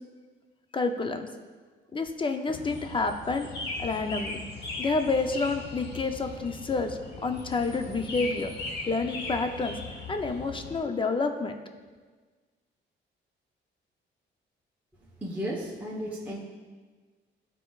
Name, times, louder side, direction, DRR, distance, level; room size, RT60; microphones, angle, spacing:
voice 1, 0.7-1.3 1.9-3.5 3.8-4.4 4.8-8.5 8.9-9.8 10.1-11.6, left 3 dB, 25° left, 6 dB, 0.5 m, -29 dB
sound 1, 2.5-10.8, left 3 dB, 60° left, 1.1 m, -39 dB
voice 2, 15.2-16.4, equal, 10° right, -5 dB, 1.0 m, -34 dB
12.0 x 4.4 x 2.4 m, 1.4 s
cardioid pair, 90°, 20 cm